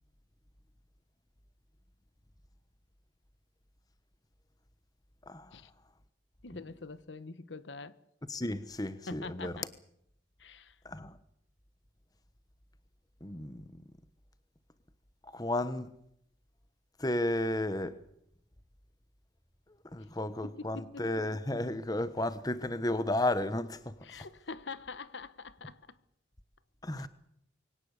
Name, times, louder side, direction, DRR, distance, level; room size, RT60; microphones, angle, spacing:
voice 1, 6.4-8.0 9.1-9.7 10.4-10.8 20.4-21.1 24.0-26.0 27.0-27.1, left 4 dB, 75° left, 1.1 m, -45 dB
voice 2, 8.3-9.5 10.8-11.2 13.2-13.6 15.3-15.9 17.0-18.0 19.9-23.9 26.8-27.1, left 1 dB, 20° left, 1.1 m, -33 dB
23.5 x 17.5 x 8.3 m
head